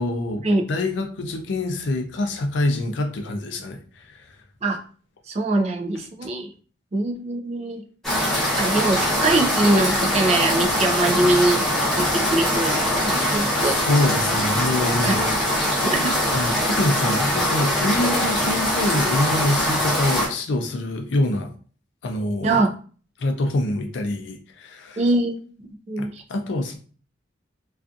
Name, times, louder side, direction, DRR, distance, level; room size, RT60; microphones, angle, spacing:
voice 1, 0.0-4.4 13.5-15.4 16.3-21.5 22.0-22.6 23.2-25.0 26.0-26.8, left 1 dB, 75° left, 4 dB, 0.4 m, -25 dB
voice 2, 5.3-6.5 6.9-7.8 8.6-11.7 11.9-13.8 15.0-15.2 15.8-16.1 22.4-22.7 25.0-25.4 25.9-26.2, right 2 dB, 35° right, 3 dB, 0.4 m, -22 dB
sound 1, 8.0-20.3, equal, ahead, 0.7 m, -22 dB
2.5 x 2.3 x 2.4 m, 0.41 s
head